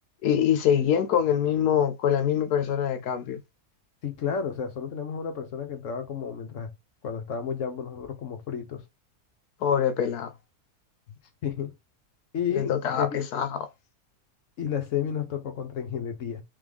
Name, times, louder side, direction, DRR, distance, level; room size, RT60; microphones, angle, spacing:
voice 1, 0.2-3.4 9.6-10.3 12.5-13.7, left 9 dB, 85° left, 1.3 m, -24 dB
voice 2, 4.0-6.7 7.0-8.8 11.4-11.7 12.3-13.2 14.6-16.4, left 8 dB, 60° left, 1.0 m, -31 dB
3.6 x 3.5 x 3.4 m
omnidirectional pair, 1.6 m